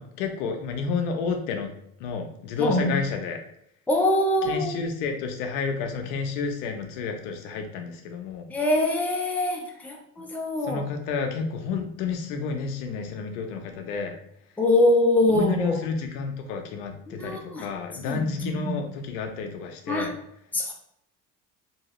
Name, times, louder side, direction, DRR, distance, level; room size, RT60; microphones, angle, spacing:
voice 1, 0.0-1.7 2.0-3.4 4.4-8.5 10.6-14.1 15.3-20.1, left 5 dB, 80° left, 4 dB, 0.7 m, -30 dB
voice 2, 2.6-2.9 3.9-4.8 8.5-10.8 14.6-15.8 17.1-17.7 18.0-18.7 19.9-20.2 20.5-20.7, left 1 dB, 5° left, 0 dB, 0.5 m, -24 dB
2.7 x 2.7 x 3.0 m, 0.75 s
supercardioid pair, 80°, 43 cm